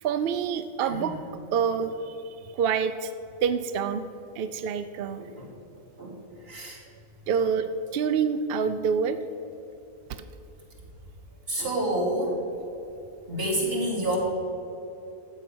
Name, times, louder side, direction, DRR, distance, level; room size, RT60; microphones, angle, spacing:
voice 1, 0.0-1.2 1.5-2.1 2.5-3.1 3.4-4.1 4.4-5.2 7.3-9.2 10.1-10.2, right 6 dB, 65° right, 10 dB, 0.6 m, -26 dB
voice 2, 5.2-5.5 6.0-6.2 6.4-6.8 11.5-12.4 13.3-14.2, right 1 dB, 45° right, -3 dB, 2.6 m, -28 dB
13.0 x 8.0 x 6.1 m, 2.9 s
omnidirectional pair, 1.4 m